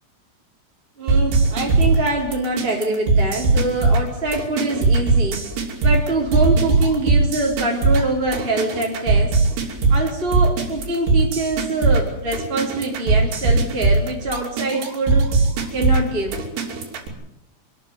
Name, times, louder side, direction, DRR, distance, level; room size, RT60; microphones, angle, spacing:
voice 1, 1.0-5.4 5.8-9.4 9.9-15.3 15.7-16.4, right 2 dB, 15° right, -2 dB, 3.3 m, -24 dB
sound 1, 1.1-17.1, right 3 dB, 60° right, 4.8 m, -19 dB
26.5 x 13.0 x 9.4 m, 0.88 s
omnidirectional pair, 5.5 m